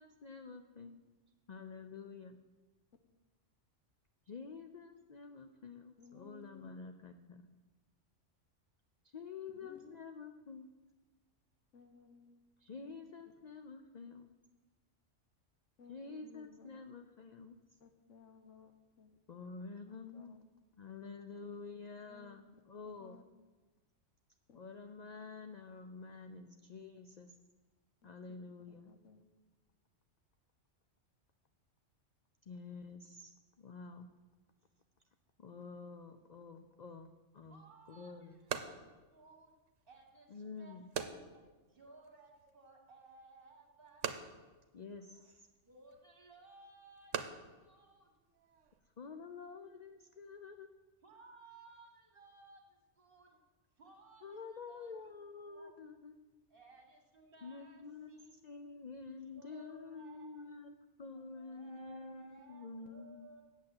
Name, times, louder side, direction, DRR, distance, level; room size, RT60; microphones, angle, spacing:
voice 1, 0.0-1.0 1.5-2.4 4.3-7.5 9.0-10.7 12.6-14.3 15.9-17.6 19.3-20.4 20.8-23.2 24.5-27.3 28.0-28.9 32.5-34.1 35.4-37.6 37.9-38.4 40.3-40.9 44.7-45.5 49.0-50.7 54.2-56.1 57.4-58.2 58.4-60.7 61.0-63.3, left 4 dB, 50° left, 6 dB, 0.5 m, -49 dB
voice 2, 6.0-6.8 9.6-10.0 11.7-12.4 12.8-12.9 15.8-16.8 17.8-19.2 19.9-20.5 22.1-23.2 24.5-24.6 28.0-28.4 28.7-29.2, left 5 dB, 80° left, 8 dB, 1.3 m, -60 dB
sound 1, 37.4-48.8, right 7 dB, 80° right, 1.1 m, -47 dB
voice 3, 37.5-39.5 39.9-44.5 45.6-47.3 47.6-48.1 51.0-53.4 53.8-55.2 55.5-55.9 56.5-57.8 58.1-58.4 59.2-60.5 61.0-63.4, right 3 dB, 45° right, 1 dB, 1.9 m, -60 dB
8.7 x 7.4 x 7.7 m, 1.2 s
omnidirectional pair, 1.3 m